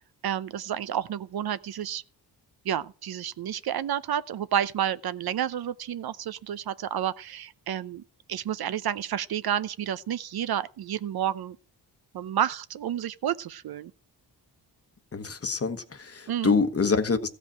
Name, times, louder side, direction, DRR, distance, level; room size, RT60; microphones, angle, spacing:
voice 1, 0.2-2.0 2.6-8.0 8.3-11.6 12.1-13.9 16.3-16.5, right 10 dB, 65° right, 0.7 m, -30 dB
voice 2, 15.1-17.3, left 4 dB, 35° left, 1.2 m, -26 dB
14.5 x 5.1 x 8.5 m
cardioid pair, 85°, 41 cm